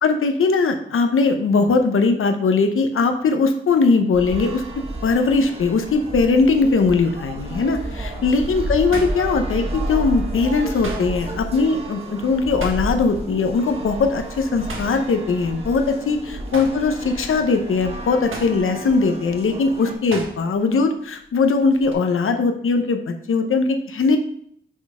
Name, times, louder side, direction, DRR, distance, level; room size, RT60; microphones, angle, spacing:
voice 1, 0.0-4.6 5.0-23.0 23.3-24.2, left 4 dB, 80° left, 6 dB, 0.8 m, -20 dB
sound 1, 4.1-19.9, right 1 dB, 30° right, 1.1 m, -31 dB
sound 2, 8.2-10.0 10.3-13.2 13.5-13.8 14.1-16.1 16.4-20.7 21.0-21.9, right 2 dB, 75° right, 1.2 m, -38 dB
6.1 x 4.1 x 4.8 m, 0.65 s
wide cardioid pair, 160°, 21 cm